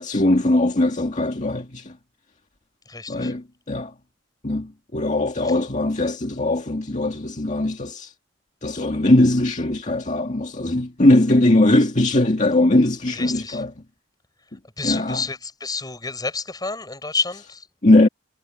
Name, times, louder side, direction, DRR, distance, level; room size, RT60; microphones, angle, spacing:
voice 1, 0.0-1.9 3.1-3.9 4.4-8.1 8.6-13.7 14.8-15.2 17.8-18.1, left 1 dB, 40° left, 1.9 m, -20 dB
voice 2, 2.9-3.3 5.4-5.5 13.1-13.6 14.8-17.7, left 4 dB, 20° left, 7.1 m, -29 dB
head